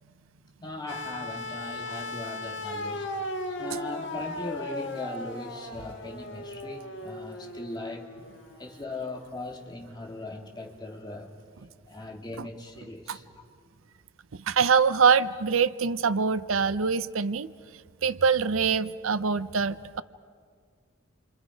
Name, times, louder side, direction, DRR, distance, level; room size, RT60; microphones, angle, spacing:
voice 1, 0.6-3.1 3.6-8.1 8.6-11.3 11.9-13.2, left 2 dB, 20° left, 0 dB, 2.3 m, -39 dB
sound 1, 0.9-9.0 10.2-10.3, left 1 dB, 65° left, 1.6 m, -37 dB
voice 2, 14.3-17.5 18.0-20.0, right 5 dB, 90° right, 15 dB, 0.6 m, -24 dB
29.0 x 25.0 x 5.2 m, 2.1 s
head